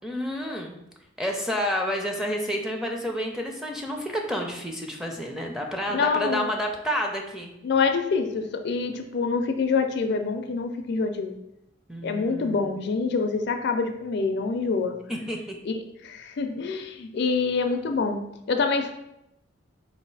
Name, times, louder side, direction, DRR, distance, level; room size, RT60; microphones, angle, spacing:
voice 1, 0.0-0.8 1.2-7.5 11.9-12.8 15.1-15.6, equal, 5° right, 0 dB, 0.5 m, -30 dB
voice 2, 5.9-6.5 7.6-11.4 12.0-15.0 15.7-18.2 18.5-18.9, left 4 dB, 60° left, 6 dB, 0.4 m, -26 dB
4.0 x 2.5 x 4.6 m, 0.84 s
head